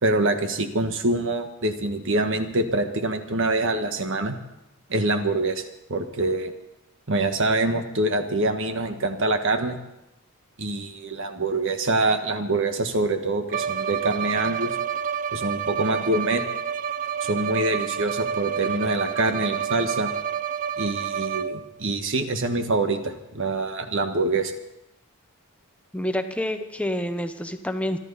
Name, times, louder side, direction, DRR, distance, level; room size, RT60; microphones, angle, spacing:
voice 1, 0.0-4.4 4.9-5.6 5.9-6.5 7.1-9.8 10.6-14.8 15.3-16.4 17.2-20.1 20.8-24.5, right 2 dB, 60° right, 7 dB, 1.4 m, -25 dB
Bowed string instrument, 13.5-21.8, right 8 dB, 35° right, 0.4 m, -29 dB
voice 2, 25.9-28.0, left 1 dB, 5° left, 8 dB, 0.9 m, -28 dB
25.5 x 11.0 x 4.1 m, 0.90 s
head